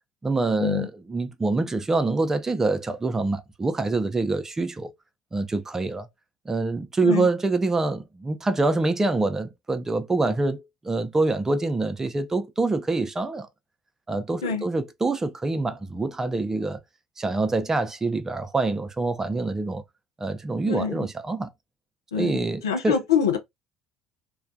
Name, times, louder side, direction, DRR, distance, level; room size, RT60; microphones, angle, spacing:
voice 1, 0.2-4.9 5.3-6.1 6.5-13.5 14.1-16.8 17.2-19.8 20.2-21.5 22.2-23.0, right 3 dB, 20° right, 0.4 m, -25 dB
voice 2, 22.6-23.4, left 7 dB, 80° left, 0.4 m, -24 dB
2.3 x 2.1 x 2.5 m
figure-of-eight pair, 55°, 2 cm